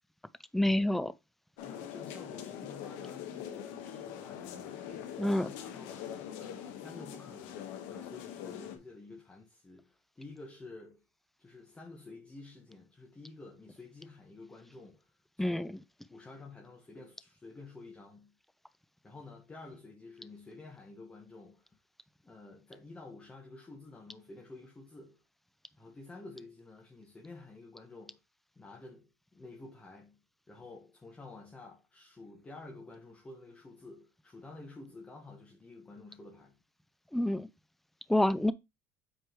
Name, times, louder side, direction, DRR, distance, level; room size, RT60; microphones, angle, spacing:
voice 1, 0.5-1.1 5.2-5.5 15.4-15.7 37.1-37.5 38.1-38.5, left 1 dB, 5° left, 0.5 m, -27 dB
sound 1, 1.6-8.8, left 9 dB, 80° left, 1.3 m, -43 dB
voice 2, 1.6-11.0 11.4-18.3 19.0-21.7 22.2-25.2 25.8-28.2 28.5-30.2 30.5-36.6, left 3 dB, 20° left, 1.6 m, -51 dB
7.9 x 4.8 x 3.1 m
supercardioid pair, 110°, 7 cm